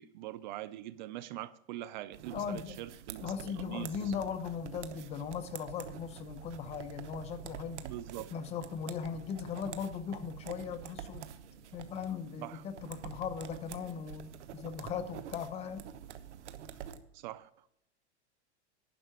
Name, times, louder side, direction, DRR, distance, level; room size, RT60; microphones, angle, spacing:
voice 1, 0.0-4.1 7.8-8.3 12.4-12.6 17.1-17.7, right 14 dB, 45° right, 0.4 m, -43 dB
sound 1, 2.1-17.0, right 9 dB, 85° right, 1.1 m, -47 dB
voice 2, 2.3-2.8 3.2-7.8 8.3-11.2 11.7-15.8, left 7 dB, 20° left, 0.6 m, -38 dB
11.0 x 5.6 x 7.4 m
supercardioid pair, 155°, 34 cm